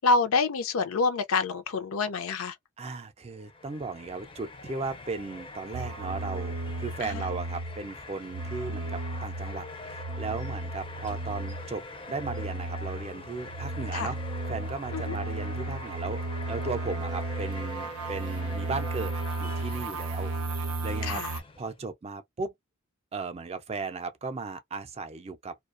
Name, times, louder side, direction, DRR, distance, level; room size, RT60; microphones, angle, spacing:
voice 1, 0.0-2.6 7.0-7.3 13.9-14.1 14.9-15.2 21.0-21.4, left 4 dB, 75° left, 0.5 m, -27 dB
voice 2, 2.8-14.2 14.5-20.3 20.6-21.2 21.6-22.5 23.1-25.5, right 4 dB, 30° right, 0.4 m, -36 dB
sound 1, 3.3-21.8, left 3 dB, 25° left, 0.5 m, -44 dB
sound 2, 5.7-7.9 8.3-11.8 12.1-21.4, right 2 dB, 85° right, 0.5 m, -34 dB
2.3 x 2.2 x 2.4 m
head